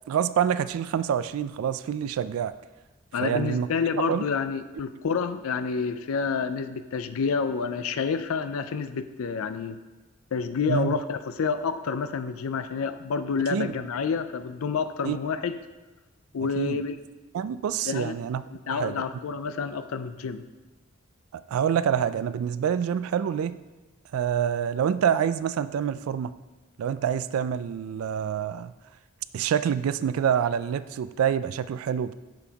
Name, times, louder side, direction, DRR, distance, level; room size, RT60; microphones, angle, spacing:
voice 1, 0.1-2.5 3.2-3.7 4.1-4.2 10.7-11.0 13.5-13.7 15.1-15.2 16.6-16.8 17.3-18.4 18.7-19.0 21.5-23.5 24.1-26.3 26.8-28.7 29.3-32.2, right 8 dB, 90° right, 15 dB, 0.3 m, -26 dB
voice 2, 3.1-9.8 10.3-15.6 16.3-17.0 17.9-18.2 18.5-20.4, left 5 dB, 90° left, 10 dB, 0.4 m, -29 dB
10.5 x 7.0 x 2.9 m, 1.2 s
head